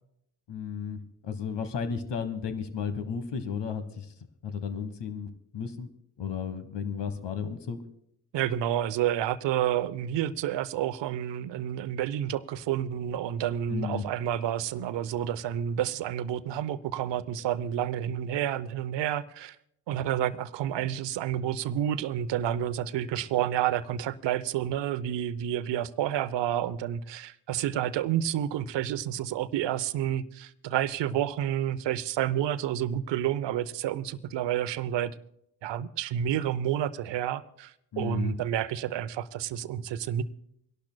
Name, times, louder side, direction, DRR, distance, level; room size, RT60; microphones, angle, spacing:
voice 1, 0.5-1.0 1.2-4.0 4.4-5.9 6.2-7.8 13.7-14.0 37.9-38.3, left 6 dB, 60° left, 1.4 m, -33 dB
voice 2, 8.3-19.6 19.9-35.1 35.6-40.2, right 11 dB, 65° right, 0.8 m, -29 dB
28.5 x 12.0 x 2.2 m
hypercardioid pair, 50°, 47 cm